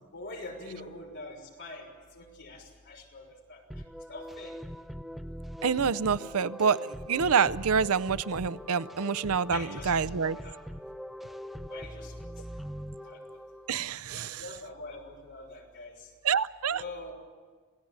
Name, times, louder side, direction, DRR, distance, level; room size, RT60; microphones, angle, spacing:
voice 1, 0.1-3.6 4.1-4.5 9.5-10.0 10.4-10.6 11.7-12.1 13.0-13.2 14.1-16.1 16.7-17.1, left 2 dB, 55° left, 0 dB, 6.1 m, -44 dB
sound 1, 3.7-13.8, equal, ahead, 0.7 m, -42 dB
voice 2, 5.6-10.4 13.7-14.4 16.2-16.8, right 6 dB, 80° right, 16 dB, 0.6 m, -27 dB
27.5 x 18.0 x 8.8 m, 1.5 s
head